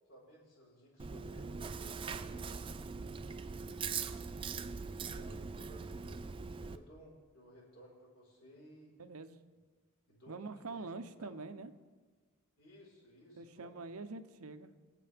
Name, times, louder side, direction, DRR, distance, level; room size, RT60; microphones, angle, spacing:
voice 1, 0.1-2.4 3.4-4.1 4.8-8.9 10.1-10.9 11.2-11.3 12.6-13.8, equal, 65° left, -4 dB, 4.7 m, -58 dB
Chewing mastication, 1.0-6.8, right 5 dB, 25° right, 0.3 m, -41 dB
voice 2, 9.0-9.4 10.3-11.7 13.4-14.7, right 3 dB, 80° right, 9 dB, 0.8 m, -45 dB
24.0 x 8.4 x 3.5 m, 1.4 s
head